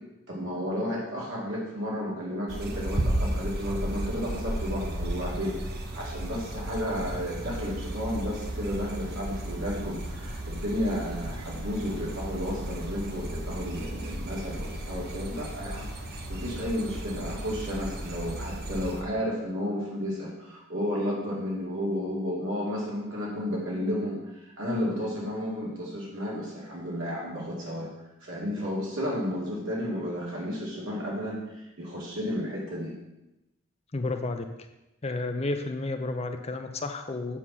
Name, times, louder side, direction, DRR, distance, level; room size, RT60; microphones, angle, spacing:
voice 1, 0.3-5.6 5.9-15.9 16.3-27.9 28.2-32.9, equal, 65° right, -5 dB, 2.3 m, -32 dB
sound 1, 2.5-19.0, right 1 dB, 50° right, 0.9 m, -34 dB
voice 2, 33.9-34.4 35.0-37.4, left 2 dB, 30° left, 6 dB, 0.5 m, -31 dB
7.3 x 4.3 x 6.1 m, 0.97 s
head